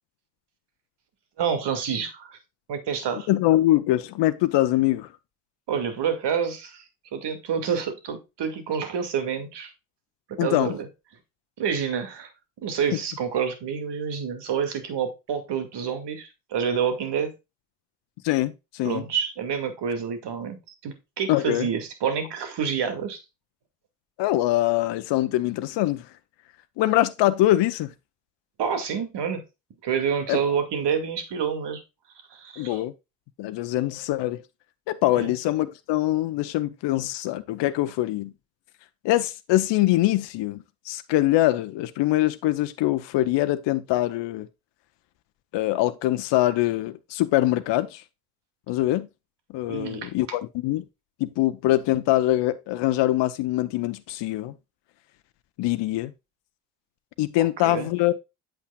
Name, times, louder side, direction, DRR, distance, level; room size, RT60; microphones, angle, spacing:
voice 1, 1.4-2.4 2.7-3.3 5.7-6.8 7.1-9.7 10.4-10.9 11.6-12.3 12.6-17.3 18.8-20.6 20.8-23.2 28.6-29.4 29.8-31.8 32.3-32.8 35.1-35.4 49.7-50.1 57.6-57.9, right 7 dB, 60° right, 2.4 m, -28 dB
voice 2, 3.3-5.1 10.4-10.8 12.9-13.0 18.2-19.0 21.3-21.7 24.2-26.1 26.8-27.9 30.3-30.4 32.6-32.9 33.4-34.4 34.9-38.3 39.0-44.5 45.5-48.0 48.7-49.1 49.5-50.8 51.2-54.5 55.6-56.1 57.2-58.1, left 15 dB, 65° left, 0.8 m, -23 dB
8.3 x 7.3 x 2.4 m
hypercardioid pair, 55°, 47 cm